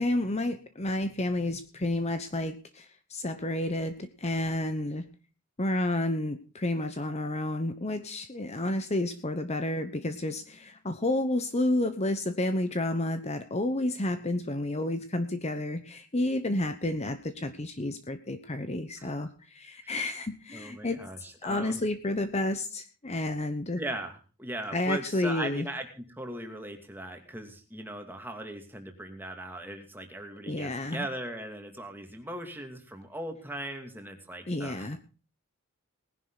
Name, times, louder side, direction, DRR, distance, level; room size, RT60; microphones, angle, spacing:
voice 1, 0.0-5.1 5.6-21.0 21.4-23.8 24.7-25.7 30.4-31.1 34.5-35.0, left 1 dB, 30° left, 9 dB, 1.0 m, -30 dB
voice 2, 20.5-21.8 23.8-35.0, right 1 dB, 10° right, 4 dB, 2.6 m, -39 dB
19.5 x 11.0 x 4.0 m, 0.35 s
head